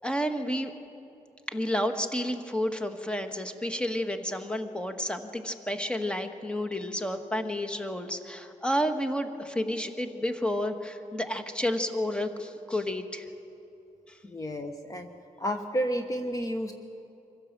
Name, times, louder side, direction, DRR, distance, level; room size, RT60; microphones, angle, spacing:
voice 1, 0.0-0.7 1.5-13.2, left 1 dB, 5° left, 7 dB, 1.5 m, -31 dB
voice 2, 14.2-15.1 15.4-16.7, equal, 25° left, 6 dB, 1.1 m, -31 dB
25.0 x 15.5 x 7.5 m, 2.9 s
cardioid pair, 85°, 14 cm